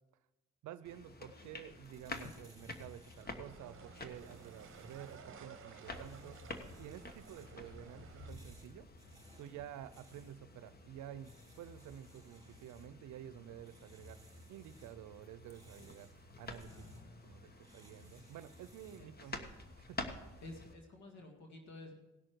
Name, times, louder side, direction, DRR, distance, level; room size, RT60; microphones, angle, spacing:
voice 1, 0.6-6.4 6.8-8.9 9.4-16.7 17.2-20.4, right 11 dB, 80° right, 14 dB, 0.7 m, -51 dB
sound 1, 0.8-20.7, left 2 dB, 30° left, 1.3 m, -50 dB
sound 2, 1.5-19.1, right 2 dB, 15° right, 4.5 m, -67 dB
sound 3, 3.2-8.3, right 7 dB, 45° right, 1.0 m, -56 dB
voice 2, 7.7-8.1 16.6-17.4 19.0-19.3 20.4-21.9, left 2 dB, 65° left, 2 dB, 2.0 m, -53 dB
17.5 x 6.4 x 4.6 m, 1.0 s
cardioid pair, 90°, 30 cm